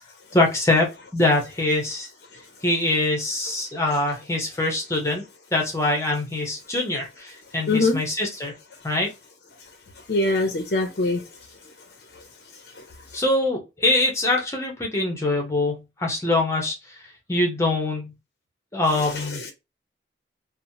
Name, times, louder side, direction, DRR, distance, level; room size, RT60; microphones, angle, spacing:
voice 1, 0.3-2.1 2.6-5.2 5.5-8.5 8.8-9.1 13.1-16.8 17.3-18.1 18.7-19.4, left 2 dB, 15° left, 0.7 m, -23 dB
voice 2, 7.7-8.0 10.1-11.2 19.0-19.5, left 2 dB, 60° left, 0.6 m, -23 dB
3.0 x 2.1 x 2.6 m
head